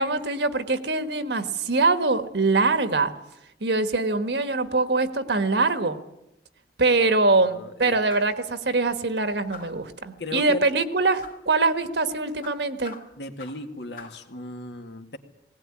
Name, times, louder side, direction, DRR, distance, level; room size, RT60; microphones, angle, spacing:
voice 1, 0.0-3.1 3.6-6.0 6.8-12.9, right 3 dB, 70° right, 10 dB, 1.5 m, -23 dB
voice 2, 7.0-8.0 10.2-10.7 13.2-15.2, left 1 dB, 70° left, 6 dB, 1.9 m, -36 dB
sound 1, 8.1-8.4 9.5-9.9 11.2-11.5 12.4-13.7 14.0-14.3, left 4 dB, 50° left, 2.2 m, -44 dB
19.5 x 17.5 x 9.9 m, 0.88 s
head